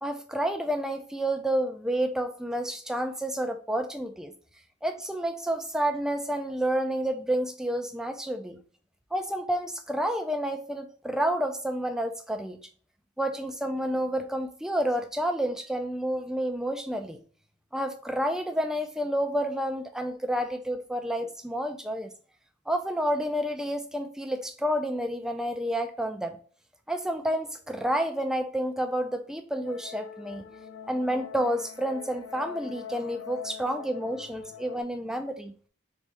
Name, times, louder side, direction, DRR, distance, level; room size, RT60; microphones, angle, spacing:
voice 1, 0.0-4.3 4.8-8.6 9.1-12.6 13.2-17.2 17.7-22.1 22.7-26.4 26.9-30.4 30.9-35.5, right 1 dB, 5° right, 0.4 m, -29 dB
sound 1, 29.6-34.8, left 8 dB, 85° left, 0.3 m, -43 dB
3.5 x 3.4 x 4.2 m
head